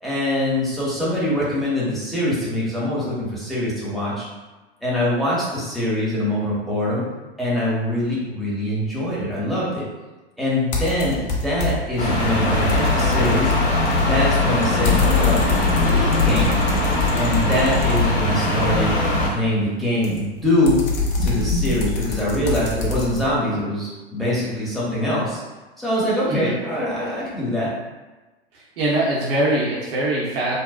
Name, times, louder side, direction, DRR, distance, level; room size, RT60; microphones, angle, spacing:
voice 1, 0.0-4.3 4.8-7.0 7.4-9.8 10.4-13.5 14.0-15.4 15.8-16.6 17.2-18.9 19.3-20.8 21.2-25.4 25.8-27.7, left 1 dB, ahead, -9 dB, 0.8 m, -23 dB
sound 1, 10.7-12.0 12.3-18.5 20.0-23.3, left 3 dB, 25° left, 0.4 m, -25 dB
sound 2, 12.0-19.3, left 2 dB, 55° left, 0.7 m, -20 dB
voice 2, 28.5-30.6, right 1 dB, 60° right, -5 dB, 0.8 m, -22 dB
2.6 x 2.0 x 2.3 m, 1.2 s
figure-of-eight pair, 95°, 31 cm